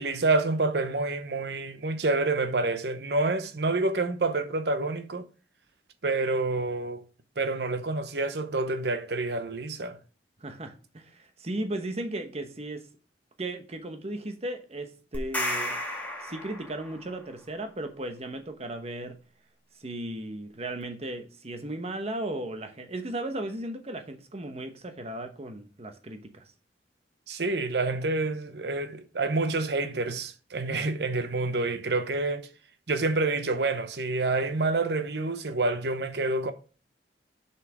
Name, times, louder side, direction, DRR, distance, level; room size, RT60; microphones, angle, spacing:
voice 1, 0.0-5.2 6.0-7.0 7.4-10.0 27.3-32.5 32.9-36.5, right 3 dB, 65° right, 0.8 m, -28 dB
voice 2, 10.4-12.8 13.4-15.8 16.2-19.2 19.8-26.4, right 1 dB, 35° right, 1.0 m, -36 dB
sound 1, 15.1-17.1, left 1 dB, 10° left, 1.7 m, -33 dB
6.5 x 5.6 x 4.8 m
head